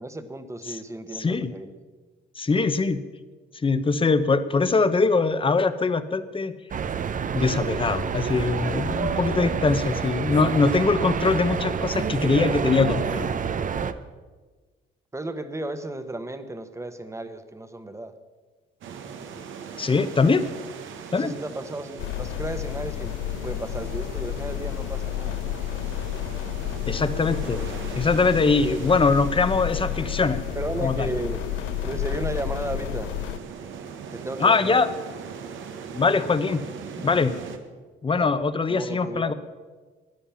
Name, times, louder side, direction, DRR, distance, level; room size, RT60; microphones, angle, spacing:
voice 1, 0.0-1.7 15.1-18.1 21.1-25.4 30.5-31.4 31.8-33.1 34.1-34.8 38.2-38.3 38.7-39.3, right 2 dB, 15° right, 10 dB, 1.2 m, -34 dB
voice 2, 1.1-1.5 2.4-3.0 3.6-6.5 7.3-13.3 19.8-20.4 21.1-21.3 26.8-27.6 27.9-30.4 30.8-31.1 34.4-34.9 35.9-36.6 37.0-37.3 38.0-39.3, left 4 dB, 25° left, 12 dB, 0.9 m, -22 dB
sound 1, 6.7-13.9, right 6 dB, 40° right, 0.7 m, -28 dB
sound 2, 18.8-37.6, right 6 dB, 80° right, 1.4 m, -39 dB
sound 3, 22.0-33.4, left 14 dB, 80° left, 0.4 m, -31 dB
13.0 x 10.0 x 7.0 m, 1.4 s
cardioid pair, 90°, 20 cm